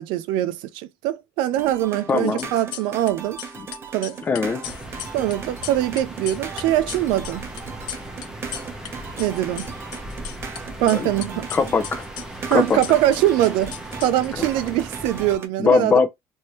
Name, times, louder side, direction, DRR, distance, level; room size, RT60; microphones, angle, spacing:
voice 1, 0.0-3.4 3.9-4.2 5.1-7.4 9.2-9.7 10.8-11.5 12.5-16.0, right 13 dB, 85° right, 0.5 m, -22 dB
sound 1, 1.5-15.5, right 5 dB, 30° right, 0.7 m, -38 dB
voice 2, 2.1-2.5 4.3-4.6 10.9-11.1 11.5-12.0 12.5-12.8 14.4-14.5 15.6-16.1, left 5 dB, 25° left, 0.6 m, -20 dB
sound 2, 2.2-3.1 3.4-8.9 9.2-10.6 10.9-14.6, left 11 dB, 75° left, 0.6 m, -37 dB
sound 3, 4.6-15.4, right 1 dB, 10° right, 0.9 m, -38 dB
3.2 x 2.7 x 3.1 m
cardioid pair, 145°, 8 cm